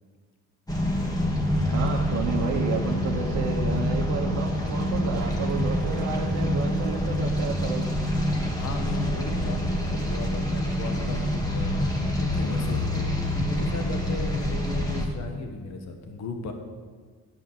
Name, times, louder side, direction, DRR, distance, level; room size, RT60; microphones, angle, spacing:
sound 1, 0.7-15.1, left 1 dB, 10° left, 2.0 m, -26 dB
voice 1, 1.7-7.9, right 5 dB, 75° right, 0 dB, 1.0 m, -31 dB
voice 2, 8.6-16.5, left 3 dB, 60° left, 4 dB, 1.4 m, -37 dB
11.5 x 5.2 x 7.2 m, 1.5 s
cardioid pair, 90°, 30 cm